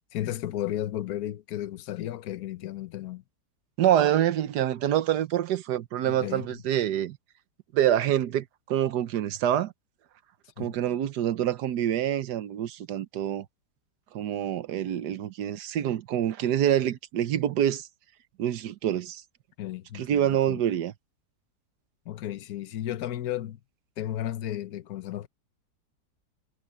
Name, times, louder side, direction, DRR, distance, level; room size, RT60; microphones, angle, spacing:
voice 1, 0.1-3.2 6.1-6.5 10.6-10.7 19.6-20.6 22.1-23.6 24.0-25.3, left 12 dB, 65° left, 1.3 m, -34 dB
voice 2, 3.8-7.2 7.7-9.7 10.6-13.4 14.1-17.9 18.4-19.2 19.9-20.9, right 11 dB, 80° right, 1.4 m, -26 dB
omnidirectional pair, 1.8 m